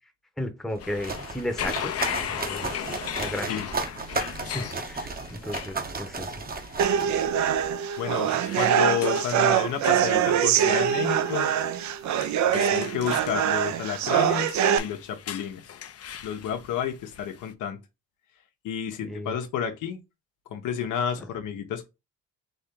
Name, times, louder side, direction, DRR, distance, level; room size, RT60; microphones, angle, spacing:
voice 1, 0.4-1.9 2.3-2.8 3.2-3.6 4.2-6.4 7.4-7.7 19.0-19.4 21.2-21.3, left 1 dB, ahead, 0.9 m, -35 dB
sound 1, 0.7-7.7, right 3 dB, 30° right, 0.8 m, -34 dB
sound 2, 0.8-17.5, left 9 dB, 50° left, 0.6 m, -38 dB
voice 2, 4.2-4.6 8.0-11.5 12.5-15.7 16.2-17.8 18.6-20.0 20.5-21.9, left 8 dB, 85° left, 1.0 m, -31 dB
sound 3, 6.8-14.8, right 9 dB, 70° right, 0.6 m, -23 dB
4.0 x 2.9 x 3.6 m
cardioid pair, 90°, 30 cm